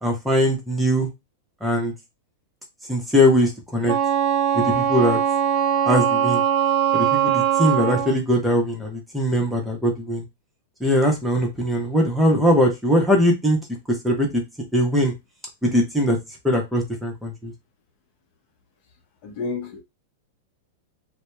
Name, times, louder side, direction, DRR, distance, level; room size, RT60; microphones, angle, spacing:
voice 1, 0.0-1.1 1.6-1.9 2.9-3.9 4.5-5.2 5.9-6.4 6.9-10.2 10.8-13.6 13.9-14.4 14.7-15.1 15.6-16.2 16.4-17.5, equal, 5° right, 0.8 m, -21 dB
Wind instrument woodwind instrument, 3.8-8.2, right 9 dB, 45° right, 0.4 m, -21 dB
voice 2, 19.2-19.8, left 4 dB, 55° left, 0.7 m, -30 dB
2.7 x 2.1 x 2.2 m
hypercardioid pair, 110°, 0 cm